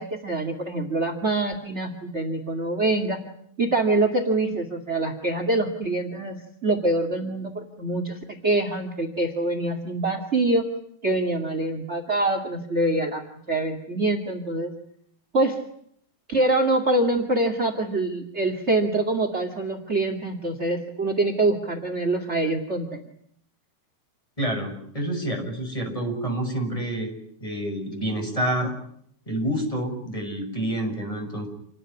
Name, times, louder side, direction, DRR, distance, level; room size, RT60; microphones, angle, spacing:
voice 1, 0.0-3.2 3.6-10.6 11.0-13.2 13.5-14.7 15.3-15.6 16.3-23.0, right 2 dB, 25° right, 7 dB, 1.5 m, -25 dB
voice 2, 24.4-27.1 27.4-28.7 29.3-31.5, right 1 dB, 5° left, 4 dB, 6.2 m, -28 dB
28.5 x 19.5 x 9.9 m, 0.70 s
omnidirectional pair, 4.7 m